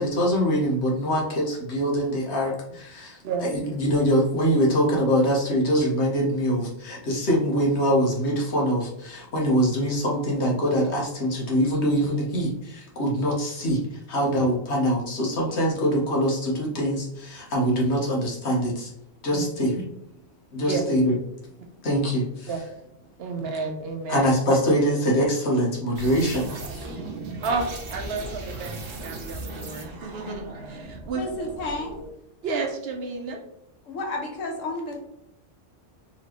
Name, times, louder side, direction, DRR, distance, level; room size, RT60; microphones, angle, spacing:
voice 1, 0.0-18.9 19.2-19.8 20.5-21.1 21.8-22.5 24.1-26.5, equal, 65° left, -2 dB, 1.3 m, -24 dB
voice 2, 23.2-24.3 27.4-31.3 32.4-33.4, right 4 dB, 60° right, 3 dB, 0.9 m, -31 dB
sound 1, 26.0-32.1, right 2 dB, 85° right, 1.3 m, -37 dB
voice 3, 31.2-32.0 33.9-35.0, left 2 dB, 90° left, 1 dB, 1.3 m, -31 dB
4.2 x 3.0 x 3.0 m, 0.78 s
omnidirectional pair, 1.3 m